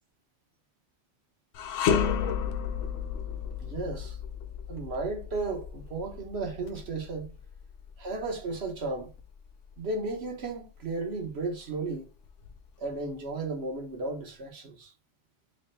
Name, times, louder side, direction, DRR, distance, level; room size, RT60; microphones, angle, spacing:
sound 1, 1.5-10.8 11.2-11.4 12.2-13.1, left 7 dB, 75° left, 0.9 m, -33 dB
voice 1, 3.6-4.2 4.7-7.3 8.0-9.1 9.8-12.1 12.8-14.9, right 3 dB, 60° right, 1.3 m, -34 dB
3.4 x 3.2 x 3.2 m
omnidirectional pair, 1.3 m